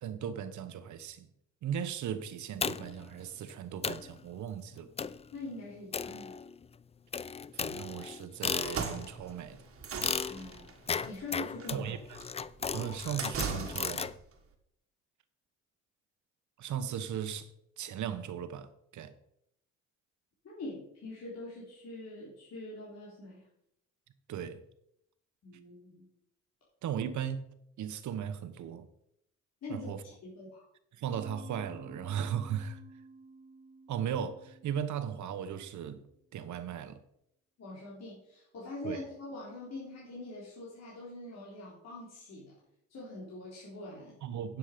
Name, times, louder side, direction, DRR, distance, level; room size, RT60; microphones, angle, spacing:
voice 1, 0.0-1.3 1.6-4.9 7.5-9.6 11.7-12.2 12.7-14.1 16.6-17.5 17.8-19.1 24.3-24.6 26.8-27.5 27.8-28.9 29.7-30.0 30.9-32.8 33.9-36.0 36.3-37.0 38.8-39.0 44.2-44.6, right 8 dB, 70° right, 1.1 m, -37 dB
sound 1, 2.6-3.1 3.5-3.6 3.8-4.1 5.0-5.3 5.9-6.7 7.1-9.1 10.0-14.1, left 6 dB, 20° left, 0.4 m, -36 dB
voice 2, 5.3-6.4 10.3-10.7 11.0-11.9 20.4-23.4 25.4-26.1 29.6-30.6 37.6-42.5 42.9-44.2, left 2 dB, 60° left, 3.8 m, -44 dB
sound 2, 8.6-14.2, right 6 dB, 50° right, 1.7 m, -40 dB
Mallet percussion, 31.1-35.9, right 3 dB, 20° right, 1.1 m, -53 dB
9.7 x 7.4 x 5.1 m
cardioid pair, 90°, 30 cm